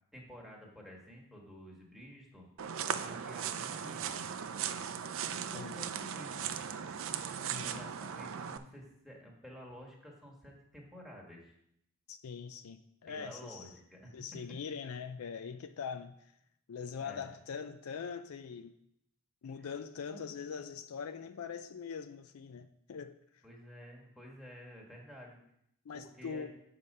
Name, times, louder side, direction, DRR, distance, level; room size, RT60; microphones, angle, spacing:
voice 1, 0.1-2.4 2.8-4.2 5.2-6.6 7.6-11.5 13.1-14.6 17.0-17.3 19.6-19.7 20.1-20.2 23.4-25.4 25.9-26.5, equal, ahead, 1.5 m, -51 dB
sound 1, 2.6-8.6, right 8 dB, 60° right, 0.4 m, -38 dB
voice 2, 7.4-7.8 12.1-13.7 14.1-16.1 16.7-18.7 19.4-23.2 25.9-26.5, left 6 dB, 70° left, 0.4 m, -42 dB
7.4 x 4.9 x 5.3 m
head